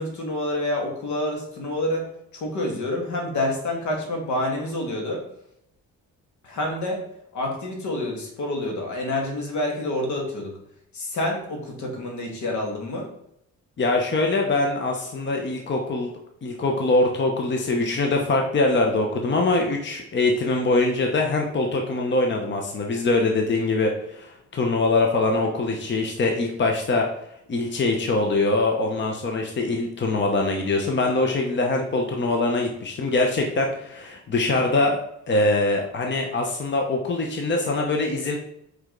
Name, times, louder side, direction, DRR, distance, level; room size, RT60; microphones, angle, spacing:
voice 1, 0.0-5.2 6.4-7.0 7.3-10.6 10.9-13.1, left 1 dB, 75° left, 0 dB, 1.9 m, -28 dB
voice 2, 13.8-16.1 16.4-27.1 27.5-35.0 35.3-38.3, left 2 dB, 40° left, 2 dB, 1.0 m, -23 dB
5.0 x 4.8 x 3.8 m, 0.75 s
cardioid pair, 90°, 30 cm